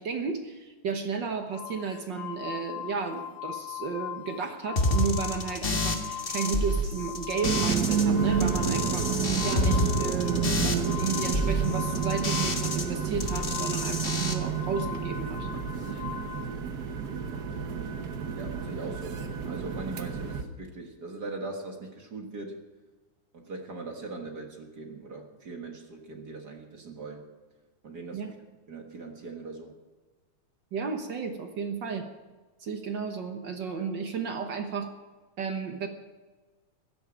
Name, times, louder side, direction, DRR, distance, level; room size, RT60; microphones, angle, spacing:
voice 1, 0.0-9.1 9.4-15.5 28.1-28.3 30.7-32.1 32.6-34.9 35.4-35.9, right 5 dB, 60° right, 5 dB, 1.2 m, -33 dB
sound 1, 1.5-16.5, left 12 dB, 80° left, 2.1 m, -40 dB
sound 2, 4.7-8.0 8.3-12.8 13.1-14.3, left 1 dB, 35° left, 0.8 m, -29 dB
sound 3, 7.4-20.4, right 7 dB, 90° right, 0.8 m, -30 dB
voice 2, 15.8-16.2 18.3-19.2 19.5-22.6 23.3-27.3 27.8-28.4 28.7-29.8, right 3 dB, 40° right, 3 dB, 1.7 m, -40 dB
16.5 x 13.0 x 5.1 m, 1.3 s
omnidirectional pair, 3.4 m